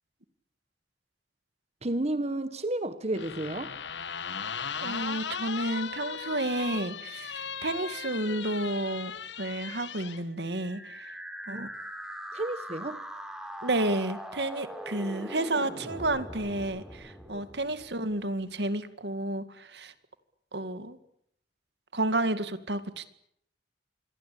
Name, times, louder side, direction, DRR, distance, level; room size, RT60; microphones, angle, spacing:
voice 1, 1.8-3.7 11.5-11.7 12.3-13.0 17.3-17.4, right 1 dB, 35° right, 1.5 m, -32 dB
sound 1, 3.2-10.2, left 7 dB, 90° left, 1.5 m, -37 dB
voice 2, 4.8-9.1 9.4-11.1 11.5-11.7 13.6-19.9 20.5-21.0 21.9-23.1, right 1 dB, 70° right, 2.2 m, -31 dB
sound 2, 10.4-18.3, equal, 5° right, 4.1 m, -42 dB
27.5 x 22.5 x 8.7 m
head